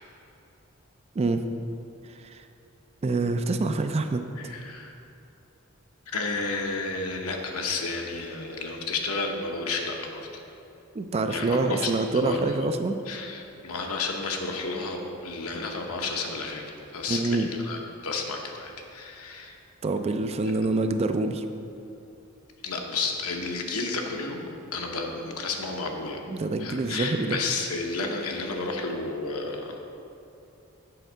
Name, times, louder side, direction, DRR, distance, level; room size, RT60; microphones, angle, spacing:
voice 1, 3.0-4.2 10.9-13.0 17.1-17.5 19.8-21.4 26.3-27.4, right 3 dB, 30° right, 8 dB, 0.3 m, -26 dB
voice 2, 4.4-4.9 6.1-10.3 11.3-12.7 13.0-19.6 22.6-24.4 24.7-26.2 26.6-29.8, left 3 dB, 80° left, 2 dB, 0.9 m, -32 dB
7.9 x 4.5 x 6.1 m, 2.9 s
head